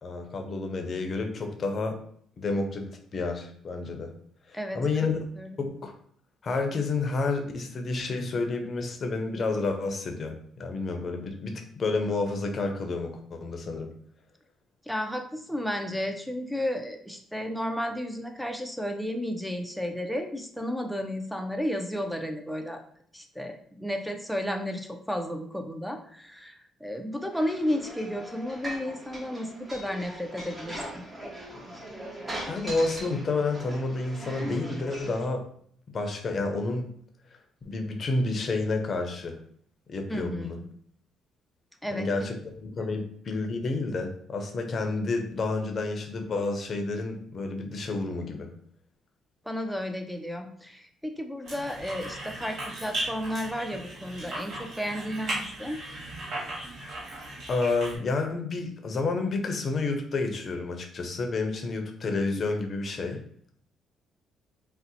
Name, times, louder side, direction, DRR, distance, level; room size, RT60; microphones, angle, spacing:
voice 1, 0.0-2.0 2.4-4.1 4.5-5.2 5.6-6.0 6.4-13.9 32.5-35.5 35.9-36.9 37.6-39.4 39.9-40.6 41.9-42.3 42.7-48.5 57.5-63.2, left 3 dB, 45° left, 5 dB, 0.6 m, -30 dB
voice 2, 14.9-22.8 23.1-31.0 40.1-40.7 41.8-42.1 42.8-43.0 49.4-55.8, equal, ahead, 4 dB, 0.5 m, -33 dB
sound 1, 27.3-35.3, right 1 dB, 20° right, 0.9 m, -40 dB
sound 2, 51.4-58.0, right 1 dB, 70° right, 1.3 m, -37 dB
2.7 x 2.1 x 4.0 m, 0.63 s
cardioid pair, 85°, 0 cm